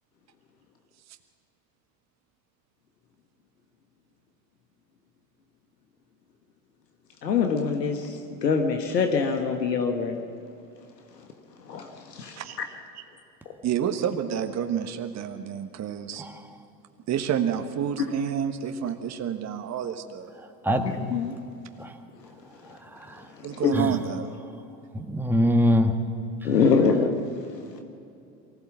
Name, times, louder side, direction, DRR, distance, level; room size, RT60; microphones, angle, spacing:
voice 1, 7.2-10.2 11.6-12.4 20.7-21.4 23.4-23.7 26.4-27.0 27.5-27.7, left 5 dB, 80° left, 4 dB, 1.6 m, -25 dB
voice 2, 13.6-16.3 17.1-20.3 23.4-24.3, right 8 dB, 35° right, 6 dB, 1.4 m, -29 dB
voice 3, 24.9-25.9, left 1 dB, 5° right, 4 dB, 1.6 m, -22 dB
23.5 x 16.0 x 7.3 m, 2.6 s
figure-of-eight pair, 80°, 49 cm